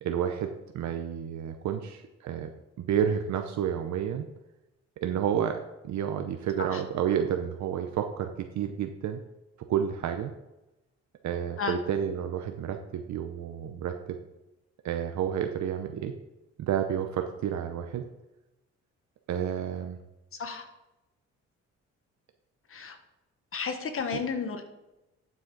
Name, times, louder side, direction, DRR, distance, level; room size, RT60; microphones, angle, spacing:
voice 1, 0.0-2.5 2.8-4.3 5.0-5.6 5.8-8.3 8.6-9.2 9.7-10.3 11.2-14.2 14.8-16.1 16.6-18.0 19.3-20.0 24.1-24.2, right 9 dB, 70° right, 6 dB, 0.8 m, -30 dB
voice 2, 23.5-24.6, left 5 dB, 45° left, 7 dB, 1.5 m, -32 dB
11.5 x 6.2 x 4.0 m, 0.96 s
cardioid pair, 90°, 30 cm